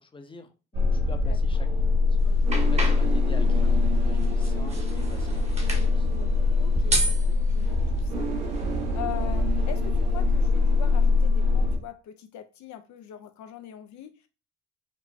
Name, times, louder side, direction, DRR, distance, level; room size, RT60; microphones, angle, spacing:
voice 1, 0.0-6.1, left 3 dB, 15° left, 7 dB, 0.6 m, -46 dB
sound 1, 0.7-11.8, left 3 dB, 60° right, 1.3 m, -23 dB
sound 2, 2.2-9.0, right 1 dB, 20° right, 1.0 m, -33 dB
Singing, 2.5-7.7, left 7 dB, 50° left, 1.1 m, -51 dB
voice 2, 6.0-8.3 8.5-14.3, left 11 dB, 70° left, 8 dB, 0.5 m, -42 dB
5.2 x 2.1 x 2.5 m, 0.32 s
cardioid pair, 90°, 30 cm